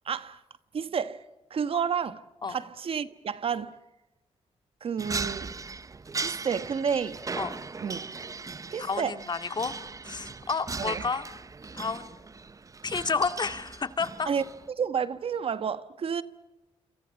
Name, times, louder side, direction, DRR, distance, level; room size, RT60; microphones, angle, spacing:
voice 1, 0.0-0.4 0.7-1.2 1.5-2.2 2.5-3.8 4.8-5.5 6.2-7.2 7.8-8.0 8.7-9.2 10.8-11.0 14.3-16.2, right 7 dB, 55° right, 1.4 m, -30 dB
sound 1, 5.0-14.7, right 4 dB, 30° right, 0.9 m, -38 dB
voice 2, 8.8-9.7 10.0-11.2 11.7-12.1 12.8-14.3, left 5 dB, 40° left, 2.2 m, -30 dB
29.0 x 27.0 x 7.2 m
cardioid pair, 105°, 11 cm